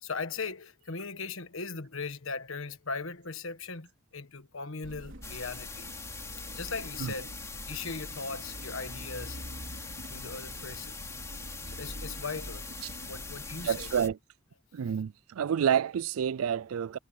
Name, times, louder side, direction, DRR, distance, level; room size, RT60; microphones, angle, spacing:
voice 1, 0.0-5.9 6.5-7.3 7.7-9.5 10.1-11.0 11.7-12.7 13.0-13.9, left 4 dB, 75° left, 1.4 m, -38 dB
sound 1, 4.8-14.1, equal, 60° right, 4.5 m, -45 dB
sound 2, 5.2-14.1, left 4 dB, 15° left, 3.0 m, -43 dB
voice 2, 13.6-14.2 14.7-17.0, right 8 dB, 85° right, 0.4 m, -29 dB
head